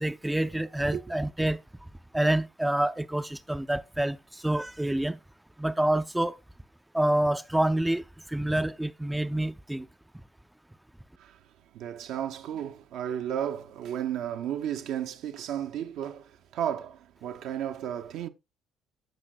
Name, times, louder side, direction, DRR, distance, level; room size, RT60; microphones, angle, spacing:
voice 1, 0.0-1.6 2.1-4.2 4.4-5.2 5.6-6.4 6.9-8.0 8.3-9.9, right 1 dB, 5° right, 0.5 m, -27 dB
voice 2, 11.7-18.3, right 10 dB, 60° right, 0.6 m, -33 dB
14.0 x 5.8 x 2.4 m
figure-of-eight pair, 50°, 0 cm